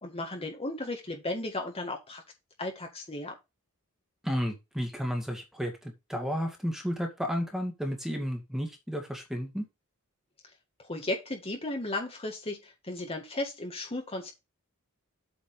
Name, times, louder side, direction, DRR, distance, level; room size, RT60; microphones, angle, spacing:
voice 1, 0.0-2.2 2.6-3.3 10.9-14.3, left 2 dB, 25° left, 2 dB, 1.9 m, -35 dB
voice 2, 4.2-9.7, equal, ahead, 3 dB, 2.3 m, -32 dB
8.5 x 5.2 x 4.9 m, 0.23 s
head